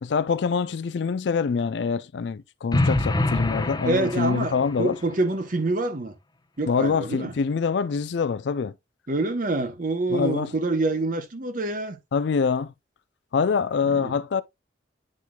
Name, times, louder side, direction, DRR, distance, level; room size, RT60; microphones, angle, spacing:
voice 1, 0.0-5.0 6.7-8.7 10.1-10.5 12.1-12.7 13.3-14.4, left 5 dB, 65° left, 0.4 m, -25 dB
sound 1, 2.7-4.8, left 2 dB, 20° left, 0.8 m, -25 dB
voice 2, 3.8-6.1 6.6-7.3 9.1-12.0 13.8-14.1, right 2 dB, 45° right, 0.9 m, -26 dB
9.8 x 4.5 x 2.2 m
head